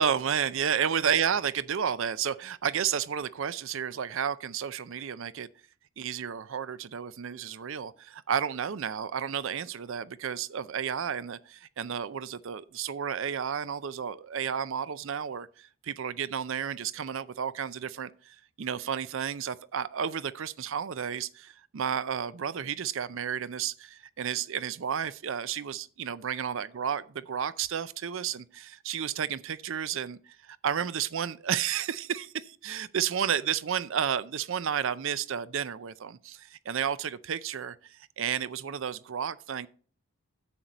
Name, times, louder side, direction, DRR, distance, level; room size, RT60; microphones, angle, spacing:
voice 1, 0.0-5.5 6.0-30.2 30.5-39.7, right 8 dB, 60° right, 0.4 m, -32 dB
9.9 x 7.9 x 4.1 m
head